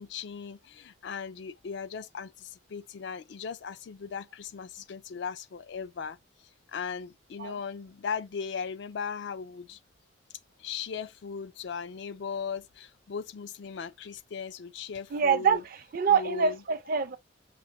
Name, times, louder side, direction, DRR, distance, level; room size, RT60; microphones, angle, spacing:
voice 1, 0.0-6.2 6.7-9.8 10.6-15.6 16.1-16.6, left 6 dB, 55° left, 0.4 m, -38 dB
voice 2, 15.1-17.2, right 6 dB, 45° right, 0.5 m, -26 dB
6.0 x 2.1 x 2.7 m
head